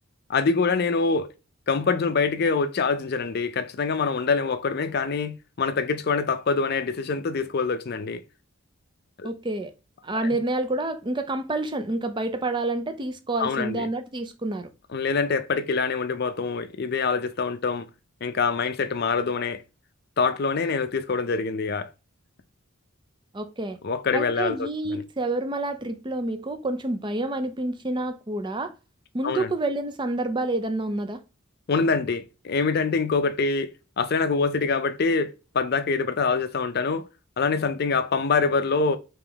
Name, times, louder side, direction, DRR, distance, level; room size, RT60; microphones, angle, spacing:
voice 1, 0.3-1.3 1.7-8.2 9.2-9.3 10.1-10.2 13.4-13.9 14.9-17.9 18.2-19.6 20.2-21.9 23.8-25.0 29.2-29.5 31.7-37.1 37.4-39.0, left 4 dB, 50° left, 0.5 m, -25 dB
voice 2, 9.2-9.7 10.0-14.7 23.3-23.8 24.1-28.7 29.1-31.2, right 2 dB, 20° right, 0.5 m, -28 dB
3.5 x 3.0 x 3.5 m
head